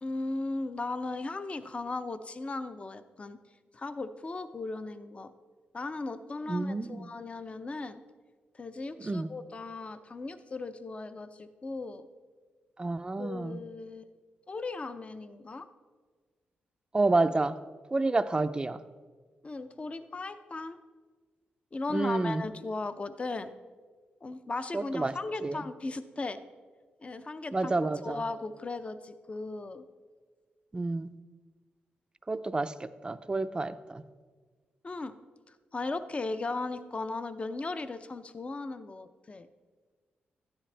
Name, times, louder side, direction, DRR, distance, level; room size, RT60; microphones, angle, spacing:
voice 1, 0.0-3.4 3.7-5.3 5.7-8.0 8.5-12.1 13.2-14.1 14.5-15.7 19.4-20.8 21.7-23.5 24.2-26.4 27.0-29.8 34.8-35.2 35.5-39.5, left 3 dB, 30° left, 11 dB, 0.6 m, -37 dB
voice 2, 6.5-7.1 9.0-9.3 12.8-13.6 16.9-17.6 17.9-18.8 21.9-22.4 24.7-25.2 25.4-25.6 27.5-28.2 30.7-31.1 32.3-34.0, right 2 dB, 25° right, 12 dB, 0.5 m, -29 dB
12.5 x 10.0 x 3.3 m, 1.5 s
cardioid pair, 80°, 4 cm